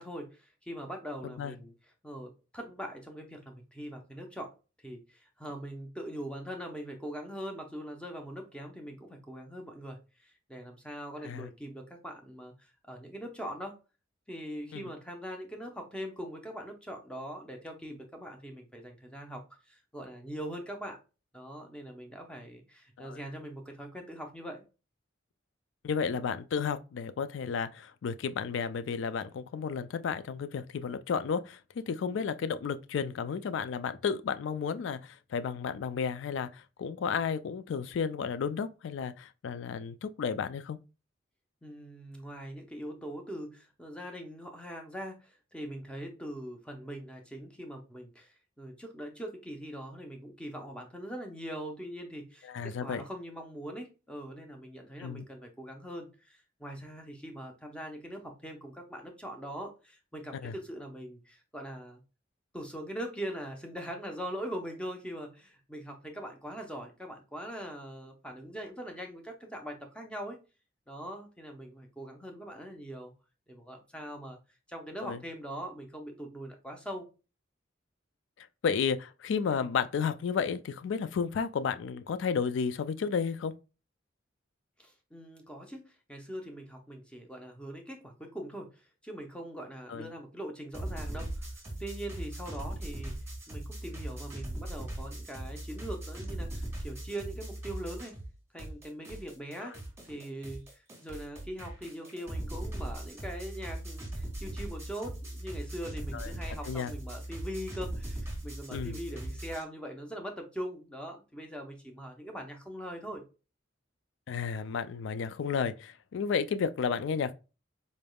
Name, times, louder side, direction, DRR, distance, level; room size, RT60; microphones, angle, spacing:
voice 1, 0.0-1.7 2.0-4.5 4.8-13.8 14.3-21.0 21.3-24.6 32.1-32.3 41.6-62.0 62.5-70.4 70.9-73.1 73.5-74.4 74.7-77.1 84.8-91.5 91.8-93.1 93.5-98.1 98.5-99.7 100.1-113.2, equal, 5° left, 0.7 m, -42 dB
voice 2, 1.2-1.6 11.2-11.5 14.7-14.9 23.0-23.2 25.8-40.8 52.4-53.0 55.0-55.2 60.4-60.5 75.0-75.2 78.4-83.5 89.9-90.1 106.1-106.3 106.6-106.9 108.7-109.0 114.3-117.3, left 6 dB, 70° left, 0.3 m, -32 dB
sound 1, 90.7-98.3 98.6-109.6, right 1 dB, 15° right, 1.3 m, -39 dB
4.1 x 3.4 x 2.2 m
head